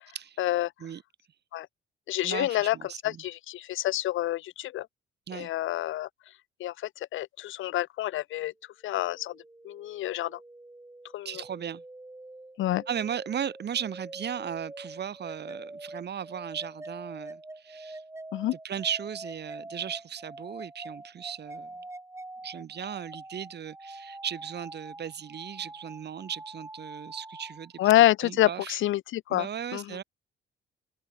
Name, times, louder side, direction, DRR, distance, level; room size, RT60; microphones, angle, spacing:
voice 1, 0.4-0.7 1.5-1.7 2.1-2.8 3.0-4.9 5.3-6.1 6.6-8.5 8.8-9.4 9.6-10.4 11.1-11.4 12.6-12.8 18.3-18.5 27.8-30.0, left 14 dB, 80° left, 1.1 m, -27 dB
voice 2, 2.2-3.2 5.3-5.5 11.2-11.8 12.9-18.0 18.6-21.7 22.4-27.7 28.2-28.8 29.3-30.0, right 8 dB, 55° right, 6.1 m, -36 dB
sound 1, 8.9-28.0, right 2 dB, 15° right, 6.7 m, -45 dB
open air
cardioid pair, 90°, 20 cm